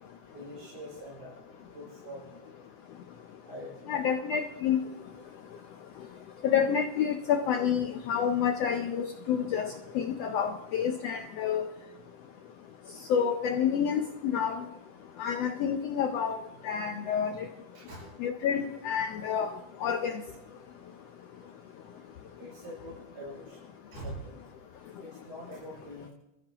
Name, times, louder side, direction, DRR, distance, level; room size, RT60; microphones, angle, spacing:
voice 1, 0.3-1.4 1.7-2.3 3.4-4.2 6.2-6.4 17.3-17.4 17.7-18.1 20.7-21.0 22.1-23.6 23.9-24.4 25.0-26.1, equal, 85° right, -7 dB, 6.6 m, -44 dB
voice 2, 3.9-4.8 6.4-11.7 13.1-14.6 15.2-16.4 16.6-17.5 18.2-19.5 19.8-20.1, left 8 dB, 85° left, 5 dB, 1.4 m, -28 dB
23.5 x 14.5 x 2.9 m, 0.92 s
omnidirectional pair, 3.7 m